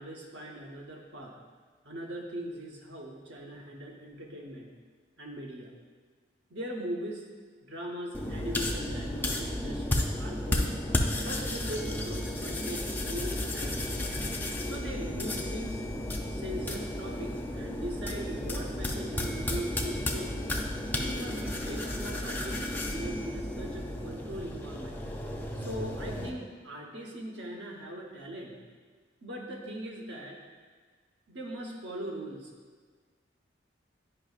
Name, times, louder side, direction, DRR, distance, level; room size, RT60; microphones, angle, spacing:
voice 1, 0.0-1.4 1.8-4.7 5.2-5.7 6.5-7.2 7.6-10.9 11.2-14.0 14.6-15.9 16.3-20.4 21.0-25.1 25.5-28.6 29.2-30.4 31.3-32.5, right 1 dB, 70° right, -1 dB, 1.0 m, -40 dB
sound 1, 8.1-26.3, left 1 dB, 10° left, 0.4 m, -33 dB
9.7 x 5.3 x 2.4 m, 1.5 s
head